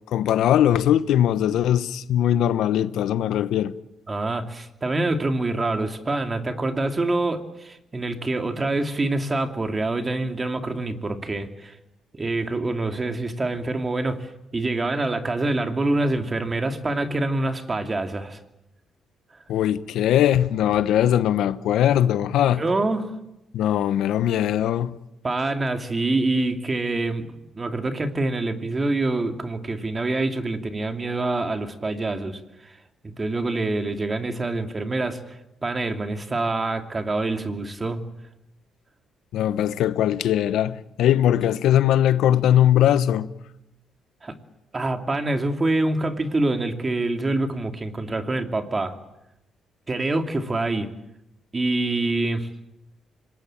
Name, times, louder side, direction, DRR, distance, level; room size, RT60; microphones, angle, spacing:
voice 1, 0.1-3.7 19.5-22.6 23.5-24.9 39.3-43.3, left 11 dB, 80° left, 1.0 m, -20 dB
voice 2, 4.1-11.8 12.1-18.4 22.5-23.1 25.2-27.3 27.6-32.8 33.2-38.0 44.2-44.4 44.7-49.0 49.9-50.9 51.5-52.5, right 2 dB, 25° right, 2.7 m, -26 dB
26.0 x 20.0 x 8.9 m
cardioid pair, 90°, 0 cm